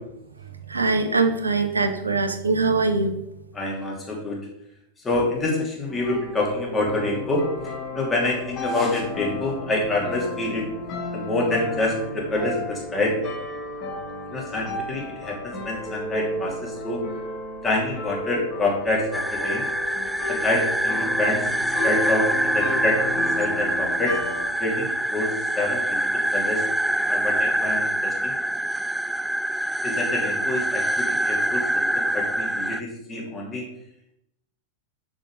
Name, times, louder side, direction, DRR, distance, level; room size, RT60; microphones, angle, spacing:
voice 1, 0.7-3.1, right 3 dB, 75° right, 7 dB, 0.9 m, -22 dB
voice 2, 3.5-4.4 5.0-7.5 7.9-10.7 11.1-13.2 14.3-17.0 17.6-19.6 20.3-21.5 21.8-24.2 24.6-26.6 27.0-28.3 29.8-33.6, left 2 dB, 15° left, -2 dB, 2.8 m, -27 dB
sound 1, 5.9-24.5, left 2 dB, 35° left, 2.1 m, -33 dB
sound 2, 19.1-32.8, right 1 dB, 5° right, 0.3 m, -25 dB
6.8 x 6.3 x 4.9 m, 0.81 s
figure-of-eight pair, 90°, 0 cm